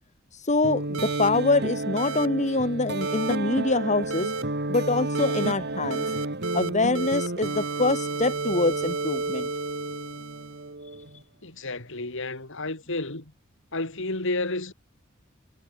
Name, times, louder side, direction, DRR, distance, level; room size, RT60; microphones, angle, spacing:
voice 1, 0.3-4.3 4.7-6.0 6.5-9.5, left 3 dB, 35° left, 2.4 m, -25 dB
sound 1, 0.6-11.2, right 2 dB, 55° right, 4.6 m, -32 dB
sound 2, 0.9-1.3 2.0-2.3 3.0-3.4 4.1-4.4 5.1-5.5 5.9-6.7 6.9-10.7, right 3 dB, 80° right, 3.7 m, -31 dB
voice 2, 11.4-13.3 13.7-14.7, left 2 dB, 65° left, 4.3 m, -31 dB
head